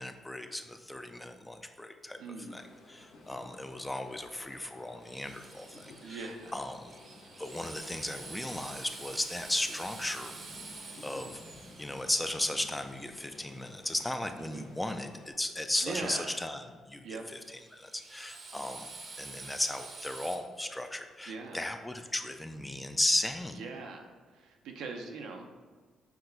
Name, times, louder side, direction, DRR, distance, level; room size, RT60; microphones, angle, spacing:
voice 1, 0.0-2.2 2.5-6.9 7.4-10.3 11.0-11.3 11.8-17.2 17.7-18.9 19.2-23.6, left 1 dB, 10° left, 7 dB, 0.3 m, -35 dB
voice 2, 2.2-2.6 6.0-6.5 14.4-14.7 15.8-16.4 17.0-17.3 21.2-21.6 23.5-25.5, right 4 dB, 85° right, 3 dB, 0.6 m, -41 dB
sound 1, 2.5-15.3, left 2 dB, 85° left, 0.8 m, -54 dB
Drill, 5.0-14.0 17.4-20.3, right 3 dB, 50° right, 0.7 m, -48 dB
5.8 x 2.2 x 3.9 m, 1.5 s
cardioid pair, 90°, 0 cm